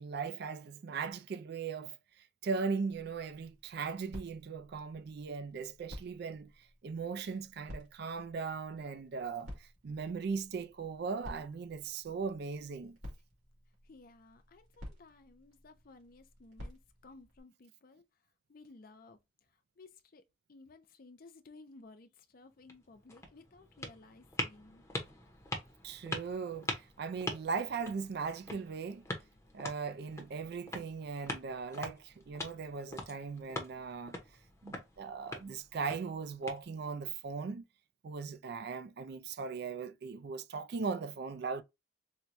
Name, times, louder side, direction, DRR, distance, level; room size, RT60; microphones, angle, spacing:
voice 1, 0.0-13.0 25.8-29.0 29.5-34.2 34.6-37.6 38.0-41.6, right 5 dB, 50° right, 0.4 m, -38 dB
sound 1, 2.9-17.4, equal, 70° right, 2.0 m, -53 dB
voice 2, 13.8-20.2 20.5-24.8, left 3 dB, 45° left, 0.5 m, -57 dB
sound 2, 22.5-37.1, left 2 dB, 15° left, 0.8 m, -44 dB
4.4 x 2.2 x 2.5 m
head